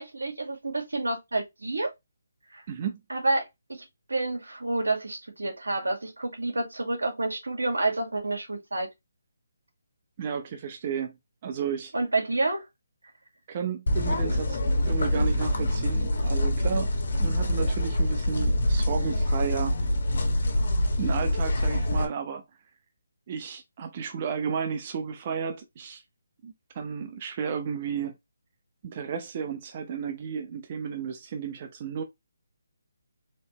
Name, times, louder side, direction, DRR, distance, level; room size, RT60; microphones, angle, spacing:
voice 1, 0.0-1.9 2.5-2.6 3.1-8.9 11.9-12.7, right 2 dB, 85° right, 1.9 m, -29 dB
voice 2, 2.7-3.0 10.2-11.2 11.4-11.9 13.5-14.6 14.9-16.9 17.2-19.8 21.0-22.4 23.3-26.0 26.4-28.1 28.8-32.0, right 7 dB, 35° right, 0.7 m, -33 dB
sound 1, 13.9-22.1, left 1 dB, 60° left, 1.6 m, -25 dB
4.2 x 3.3 x 3.0 m
figure-of-eight pair, 155°, 0 cm